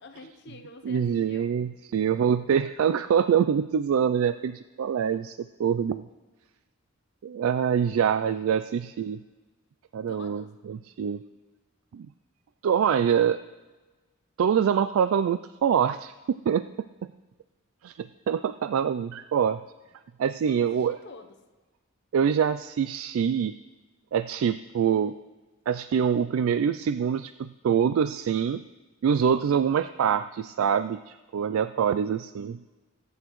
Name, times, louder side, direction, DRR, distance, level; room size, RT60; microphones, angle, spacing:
voice 1, 0.0-1.5 7.7-8.0 10.1-10.5 20.5-21.4, left 3 dB, 50° left, 6 dB, 0.8 m, -47 dB
voice 2, 0.8-6.0 7.2-9.2 9.9-11.2 11.9-12.1 12.6-13.4 14.4-16.6 17.8-19.6 20.2-21.0 22.1-23.6 24.1-25.1 25.7-28.7 29.0-32.6, right 7 dB, 70° right, 13 dB, 0.3 m, -25 dB
22.0 x 8.7 x 3.1 m, 1.2 s
head